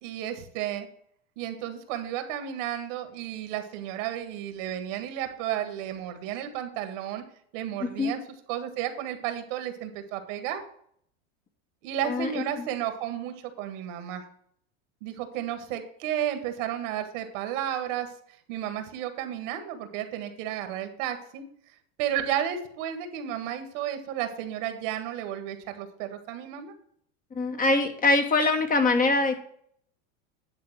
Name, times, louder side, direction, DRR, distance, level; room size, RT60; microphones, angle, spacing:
voice 1, 0.0-0.9 1.4-7.2 7.5-8.2 8.5-10.6 11.8-14.3 15.0-18.1 18.5-21.4 22.0-26.7, right 10 dB, 65° right, 7 dB, 1.8 m, -32 dB
voice 2, 7.8-8.1 12.0-12.3 27.3-29.4, left 3 dB, 20° left, 6 dB, 1.2 m, -23 dB
10.5 x 3.7 x 7.5 m, 0.64 s
supercardioid pair, 120°, 39 cm